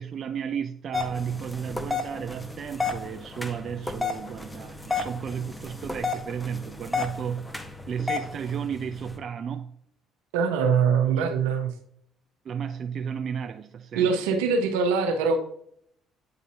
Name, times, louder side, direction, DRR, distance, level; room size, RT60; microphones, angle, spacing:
voice 1, 0.0-7.5 7.9-9.7 11.0-11.3 12.4-14.2, right 7 dB, 55° right, 0.4 m, -33 dB
sound 1, 0.9-9.2, left 4 dB, 10° left, 0.9 m, -33 dB
voice 2, 10.3-11.7 13.9-15.4, right 5 dB, 80° right, 0.8 m, -23 dB
8.6 x 4.0 x 2.8 m
hypercardioid pair, 60°, 0 cm